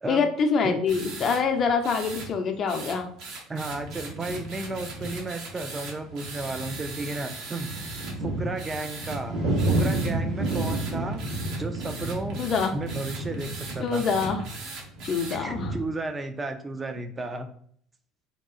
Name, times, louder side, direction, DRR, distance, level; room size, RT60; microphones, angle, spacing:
voice 1, 0.1-3.1 12.4-12.7 13.8-14.4 15.0-15.7, left 5 dB, 45° left, 5 dB, 0.5 m, -25 dB
sound 1, 0.9-1.4 1.8-2.3 2.7-8.1 8.6-9.2 9.6-10.1 10.4-15.4, right 3 dB, 65° right, 0.7 m, -40 dB
sound 2, 0.9-1.2 1.5-1.7 2.1-2.5 2.8-3.0 3.5-15.8, right 2 dB, 90° right, 1.3 m, -32 dB
voice 2, 3.5-7.7 8.2-11.2 11.6-12.4 12.7-14.0 15.3-17.5, right 2 dB, 25° right, 7 dB, 0.3 m, -33 dB
2.8 x 2.3 x 2.5 m, 0.62 s
hypercardioid pair, 80°, 0 cm